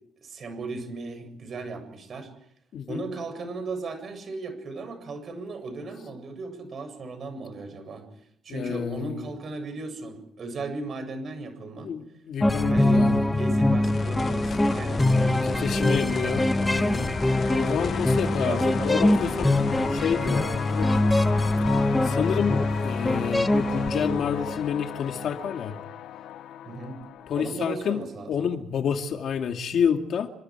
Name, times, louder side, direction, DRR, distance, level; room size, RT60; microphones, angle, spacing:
voice 1, 0.2-2.3 2.9-8.1 8.4-11.9 12.7-13.1 13.4-16.6 18.2-19.4 26.6-27.0 27.3-28.5, right 3 dB, 35° right, 8 dB, 7.7 m, -36 dB
voice 2, 2.7-3.0 8.5-9.3 11.8-13.2 15.6-17.1 17.5-19.5 19.9-21.1 22.0-25.8 27.3-28.0 28.3-30.3, left 7 dB, 50° left, 5 dB, 2.3 m, -29 dB
sound 1, 12.4-24.7, left 1 dB, 5° left, 1.1 m, -24 dB
sound 2, 13.8-24.7 27.0-27.1, left 6 dB, 30° left, 0.9 m, -38 dB
sound 3, 16.5-27.5, left 12 dB, 65° left, 0.9 m, -37 dB
30.0 x 26.5 x 4.8 m, 0.70 s
cardioid pair, 170°, 0 cm